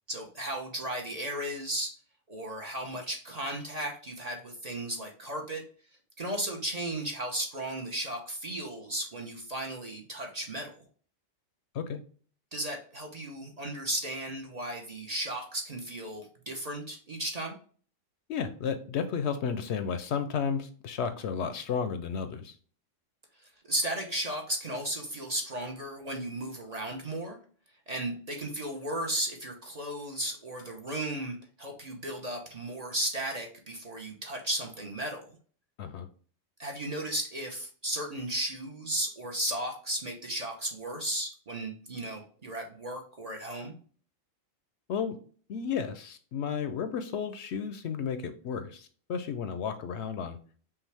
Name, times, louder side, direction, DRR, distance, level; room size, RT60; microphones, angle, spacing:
voice 1, 0.1-1.9 2.3-5.6 6.2-10.7 12.5-17.5 23.7-27.4 27.9-35.4 36.6-43.7, right 1 dB, 35° right, 2 dB, 0.8 m, -35 dB
voice 2, 18.3-22.5 35.8-36.1 44.9-45.2 45.5-50.4, left 6 dB, 70° left, 10 dB, 0.8 m, -33 dB
5.7 x 2.4 x 3.3 m, 0.44 s
omnidirectional pair, 1.3 m